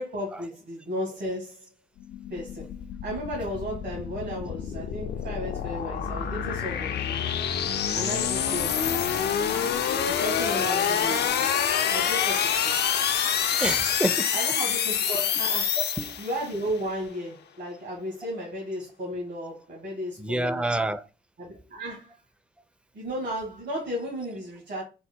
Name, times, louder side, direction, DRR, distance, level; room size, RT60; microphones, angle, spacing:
voice 1, 0.0-1.7 2.3-2.7 3.0-7.0 7.9-8.9 10.0-12.8 14.3-15.8 16.2-20.9 21.4-22.2 22.9-24.8, equal, 70° right, 1.7 m, -34 dB
sound 1, 2.0-16.6, left 8 dB, 65° left, 0.5 m, -27 dB
voice 2, 13.6-14.3 15.6-16.2 20.2-21.1, right 1 dB, 5° right, 0.5 m, -28 dB
4.3 x 2.1 x 4.4 m
supercardioid pair, 55°, 18 cm